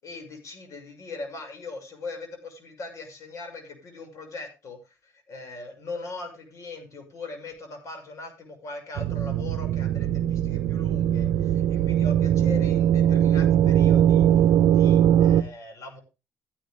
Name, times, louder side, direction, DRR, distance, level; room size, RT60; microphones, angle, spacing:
voice 1, 0.0-14.3 14.7-16.0, left 3 dB, 60° left, 5 dB, 6.5 m, -40 dB
sound 1, 9.0-15.4, right 10 dB, 80° right, 0.7 m, -20 dB
14.5 x 9.9 x 3.7 m, 0.29 s
cardioid pair, 80°, 6 cm